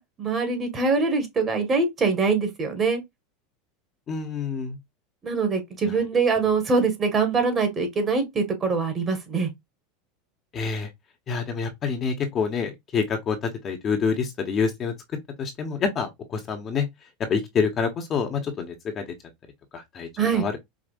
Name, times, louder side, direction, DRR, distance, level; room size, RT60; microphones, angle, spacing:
voice 1, 0.2-3.0 5.2-9.5 20.2-20.5, right 4 dB, 25° right, 1.6 m, -23 dB
voice 2, 4.1-4.8 10.5-10.9 11.3-14.9 15.4-16.9 17.3-19.0 19.7-20.6, left 5 dB, 35° left, 1.1 m, -27 dB
5.0 x 2.5 x 2.5 m
supercardioid pair, 120°, 0 cm